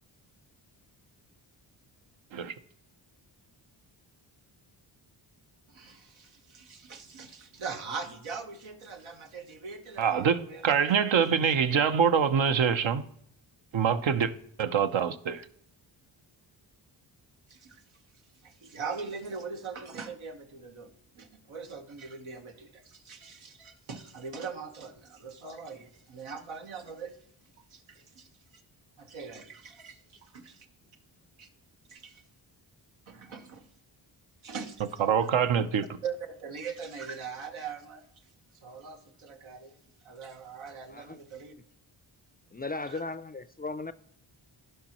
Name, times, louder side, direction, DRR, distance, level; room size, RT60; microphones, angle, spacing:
voice 1, 5.7-11.1 17.5-17.8 18.4-27.2 27.7-28.3 29.0-30.7 31.4-31.5 31.9-32.2 33.1-33.7 34.4-35.1 36.0-38.1 38.6-39.8 40.0-41.5 42.8-43.0, right 5 dB, 90° right, 1.3 m, -41 dB
voice 2, 10.0-13.0 13.7-14.3 14.6-15.4 35.0-35.8, right 7 dB, 70° right, 0.8 m, -25 dB
voice 3, 42.5-43.9, left 3 dB, 20° left, 0.4 m, -36 dB
16.0 x 5.5 x 3.0 m
cardioid pair, 75°, 47 cm